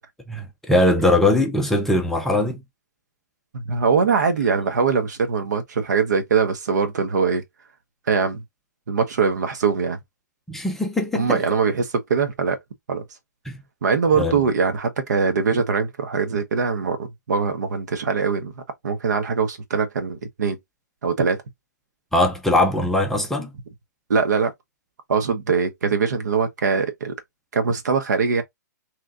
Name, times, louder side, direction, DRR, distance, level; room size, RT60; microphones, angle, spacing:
voice 1, 0.3-2.6 10.5-11.4 13.5-13.6 14.2-14.3 22.1-23.5, left 1 dB, 5° left, 0.6 m, -20 dB
voice 2, 3.5-7.4 8.1-8.4 8.9-10.0 11.1-12.6 12.9-13.0 13.8-18.5 18.8-20.6 21.0-21.4 24.1-24.5 25.1-27.1 27.5-28.4, right 5 dB, 75° right, 1.1 m, -22 dB
3.7 x 3.1 x 2.5 m
hypercardioid pair, 150°, 10 cm